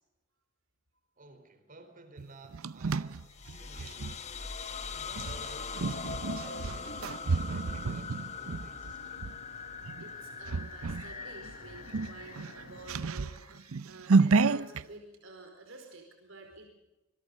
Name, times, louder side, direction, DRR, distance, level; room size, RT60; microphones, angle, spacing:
voice 1, 1.2-4.4 4.9-9.3, right 2 dB, 40° right, 8 dB, 4.1 m, -55 dB
sound 1, 2.2-4.2 5.1-9.4 9.8-10.1 10.5-11.1 11.5-11.6 11.9-14.8, right 4 dB, 80° right, 0.7 m, -30 dB
sound 2, 3.2-13.8, left 5 dB, 30° left, 1.2 m, -42 dB
sound 3, 3.6-13.0, left 2 dB, 60° left, 3.7 m, -54 dB
voice 2, 10.0-16.7, right 2 dB, 65° right, 3 dB, 4.9 m, -50 dB
26.0 x 22.5 x 5.3 m, 0.99 s
head